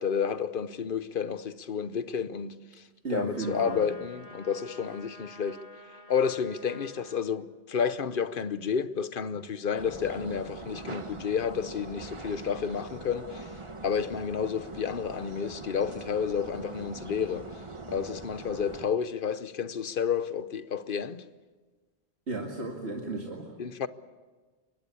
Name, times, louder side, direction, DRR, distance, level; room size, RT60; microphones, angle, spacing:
voice 1, 0.0-2.6 3.1-5.6 6.1-13.5 13.8-17.5 17.9-21.2 23.6-23.9, left 7 dB, 55° left, 1.0 m, -30 dB
voice 2, 3.0-3.8 22.3-23.5, right 3 dB, 85° right, 2.5 m, -34 dB
sound 1, 3.4-7.2, left 1 dB, 90° left, 3.4 m, -50 dB
sound 2, 9.8-18.9, right 3 dB, 30° right, 1.3 m, -42 dB
24.0 x 20.5 x 8.5 m
omnidirectional pair, 1.1 m